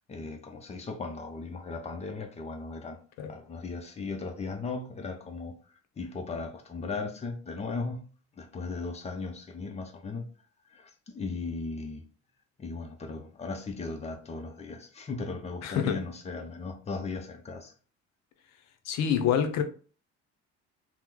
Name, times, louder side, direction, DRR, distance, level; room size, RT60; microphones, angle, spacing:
voice 1, 0.1-3.0 3.3-5.6 6.0-8.1 8.4-10.2 10.7-12.0 12.6-17.7, left 4 dB, 25° left, 0.5 m, -37 dB
voice 2, 15.6-16.1 18.8-19.6, left 8 dB, 65° left, 0.6 m, -27 dB
3.0 x 2.0 x 3.6 m
cardioid pair, 140°, 29 cm